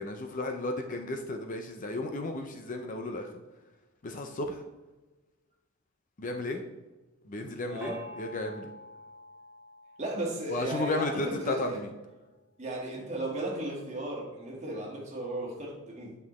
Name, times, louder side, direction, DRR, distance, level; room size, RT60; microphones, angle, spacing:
voice 1, 0.0-3.3 4.0-4.6 6.2-6.6 7.3-8.7 10.5-11.9, left 2 dB, 35° left, 5 dB, 0.5 m, -33 dB
voice 2, 7.6-8.0 10.0-11.8 12.6-16.2, right 1 dB, 30° right, -2 dB, 1.6 m, -35 dB
Gong, 7.8-11.3, equal, 10° right, 1.2 m, -49 dB
8.4 x 5.6 x 3.1 m, 1.2 s
head